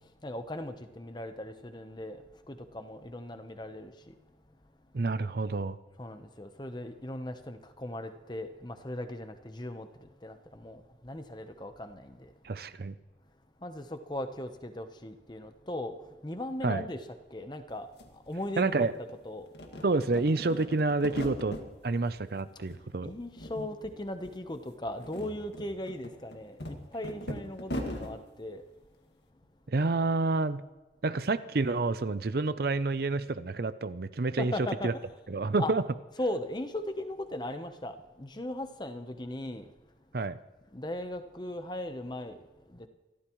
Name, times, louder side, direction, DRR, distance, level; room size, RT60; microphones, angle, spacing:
voice 1, 0.2-2.2 2.5-3.9 6.0-9.9 10.2-12.1 13.6-15.9 16.2-17.0 17.3-17.9 18.3-18.9 19.2-19.5 23.0-28.6 34.4-34.9 35.6-35.7 36.2-39.6 40.7-42.3, left 1 dB, 25° left, 0.9 m, -38 dB
voice 2, 4.9-5.8 12.4-12.9 16.6-16.8 18.6-18.9 19.8-21.6 21.8-23.1 27.3-27.4 29.7-30.6 31.0-34.5 34.8-34.9 35.3-35.8 40.1-40.4, right 3 dB, 55° right, 0.5 m, -28 dB
sound 1, 17.7-17.8 18.0-19.1 19.5-21.7 22.1-22.8 23.1-23.9 24.2-24.4 24.8-28.1, equal, 65° left, 2.0 m, -40 dB
27.5 x 13.5 x 3.1 m
head